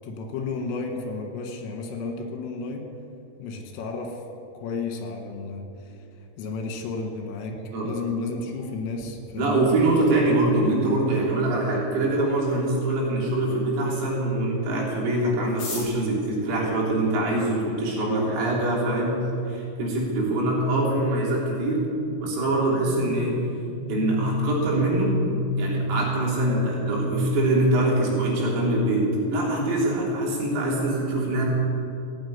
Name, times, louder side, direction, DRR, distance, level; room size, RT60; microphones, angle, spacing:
voice 1, 0.0-2.9 3.4-4.2 4.5-6.0 6.4-7.6 7.8-9.7, left 4 dB, 80° left, 3 dB, 4.3 m, -32 dB
voice 2, 9.4-19.2 19.5-21.9 22.2-23.4 23.9-25.1 25.6-31.4, right 2 dB, 80° right, -4 dB, 6.1 m, -24 dB
sound 1, 15.4-17.7 18.5-18.6 18.8-18.9 19.1-19.6 20.0-20.1 20.2-20.7 21.0-21.2 21.5-21.8, left 3 dB, 35° left, 5.5 m, -39 dB
sound 2, 22.7-28.2, left 1 dB, 55° left, 3.0 m, -30 dB
16.5 x 9.2 x 9.6 m, 2.5 s
omnidirectional pair, 5.9 m